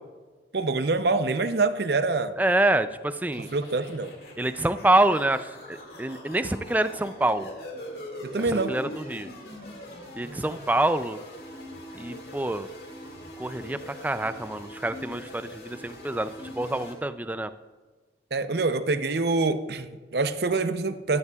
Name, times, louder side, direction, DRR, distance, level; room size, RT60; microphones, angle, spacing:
voice 1, 0.5-2.3 3.4-4.1 8.2-8.7 18.3-21.2, right 3 dB, 65° right, 11 dB, 0.6 m, -25 dB
voice 2, 2.4-3.5 4.4-7.5 8.5-9.3 10.1-11.2 11.9-12.7 13.4-17.5, right 1 dB, 10° right, 11 dB, 0.3 m, -26 dB
sound 1, 3.3-16.9, left 1 dB, 55° left, 2.1 m, -42 dB
13.0 x 11.0 x 2.3 m, 1.4 s
head